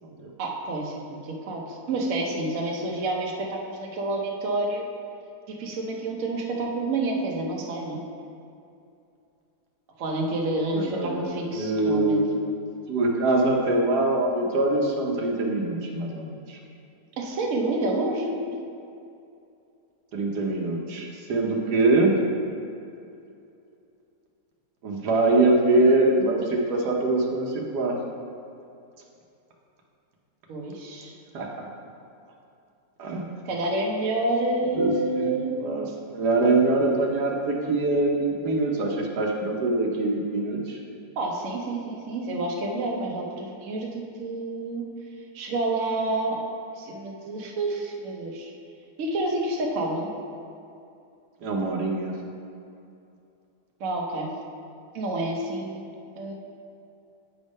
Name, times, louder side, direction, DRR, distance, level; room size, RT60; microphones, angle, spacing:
voice 1, 0.4-4.9 5.5-8.0 10.0-12.2 17.2-18.3 30.5-31.1 33.4-35.5 41.2-44.8 45.3-46.5 46.8-48.5 49.0-50.1 53.8-54.3 54.9-55.8 56.2-56.3, right 2 dB, 60° right, -1 dB, 1.1 m, -28 dB
voice 2, 10.7-12.4 12.9-16.6 20.1-22.1 24.8-27.9 31.3-31.7 33.0-33.2 34.7-40.8 51.4-52.1, right 2 dB, 80° right, 0 dB, 1.4 m, -24 dB
8.1 x 3.5 x 5.2 m, 2.6 s
omnidirectional pair, 1.7 m